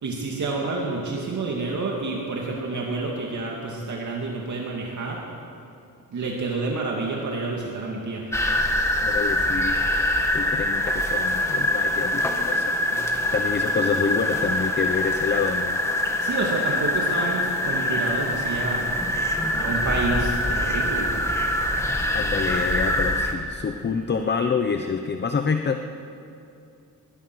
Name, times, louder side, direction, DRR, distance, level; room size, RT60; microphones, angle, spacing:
voice 1, 0.0-5.2 6.1-8.3 12.8-13.1 16.2-18.9 19.6-21.1, right 3 dB, 55° right, -2 dB, 2.6 m, -29 dB
sound 1, 8.3-23.3, left 1 dB, 10° left, 1.7 m, -24 dB
voice 2, 9.0-10.0 10.3-12.8 13.3-15.8 22.1-25.8, left 5 dB, 30° left, 6 dB, 0.8 m, -27 dB
21.0 x 20.5 x 6.3 m, 2.6 s
wide cardioid pair, 175°, 34 cm